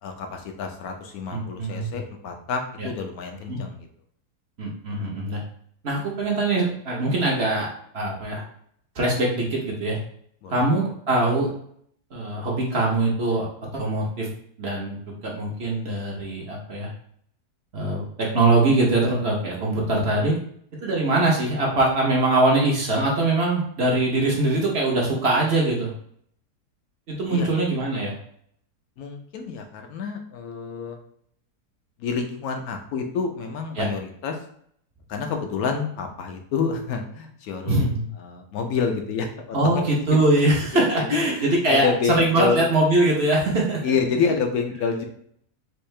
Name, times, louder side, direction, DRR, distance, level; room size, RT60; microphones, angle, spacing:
voice 1, 0.0-3.8 10.4-10.6 27.3-27.5 29.0-31.0 32.0-34.4 35.1-37.9 38.2-39.6 40.1-40.2 40.7-42.7 43.8-45.1, left 5 dB, 70° left, 4 dB, 1.1 m, -28 dB
voice 2, 1.3-2.0 2.8-2.9 3.5-3.6 4.6-5.4 5.8-8.4 9.0-10.0 10.5-11.5 12.1-13.5 13.7-14.3 14.6-16.9 17.7-20.4 20.8-25.9 27.1-28.1 33.8-33.9 37.6-38.1 39.5-43.8, right 2 dB, 50° right, -2 dB, 0.9 m, -22 dB
4.5 x 2.4 x 3.2 m, 0.65 s
omnidirectional pair, 1.7 m